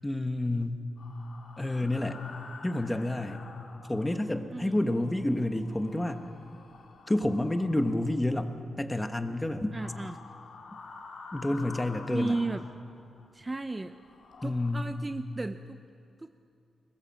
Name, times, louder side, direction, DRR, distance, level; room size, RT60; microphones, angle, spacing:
voice 1, 0.0-0.8 1.6-2.2 2.6-3.4 3.9-6.2 7.1-9.7 11.3-12.3 14.4-14.9, left 1 dB, 10° left, 7 dB, 1.2 m, -29 dB
sound 1, 1.0-4.4 4.7-8.7 9.6-13.3 13.7-14.7, left 4 dB, 70° left, 2.5 m, -49 dB
voice 2, 9.7-10.2 12.1-12.6 13.3-13.9 14.4-15.8 16.2-16.3, right 2 dB, 20° right, 9 dB, 0.5 m, -34 dB
21.5 x 20.0 x 7.4 m, 2.4 s
wide cardioid pair, 125°, 0 cm